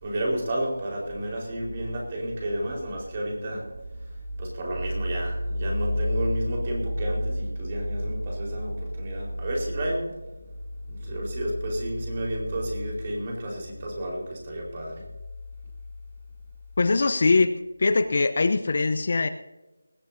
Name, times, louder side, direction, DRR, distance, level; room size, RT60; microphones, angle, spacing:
voice 1, 0.0-3.8 4.1-4.2 4.4-10.1 10.9-15.0, equal, 30° right, -1 dB, 4.4 m, -29 dB
voice 2, 16.8-17.5 17.8-19.3, left 3 dB, 45° left, 11 dB, 0.8 m, -22 dB
20.0 x 15.5 x 2.8 m, 1.1 s
figure-of-eight pair, 170°, 0 cm